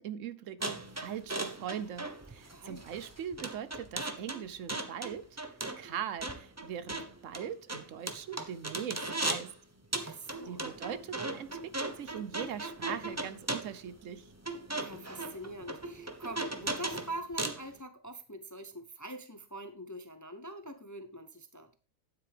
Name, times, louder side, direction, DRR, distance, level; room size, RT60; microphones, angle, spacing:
voice 1, 0.0-5.3 5.8-7.0 7.2-9.5 10.0-10.2 10.5-14.3, right 9 dB, 70° right, 15 dB, 1.0 m, -41 dB
sound 1, 0.6-9.5 9.9-17.7, right 2 dB, 15° right, 0.8 m, -37 dB
voice 2, 2.5-2.9 10.0-10.6 14.7-21.8, right 1 dB, 20° left, 9 dB, 0.6 m, -44 dB
9.5 x 8.1 x 3.5 m, 0.35 s
omnidirectional pair, 1.4 m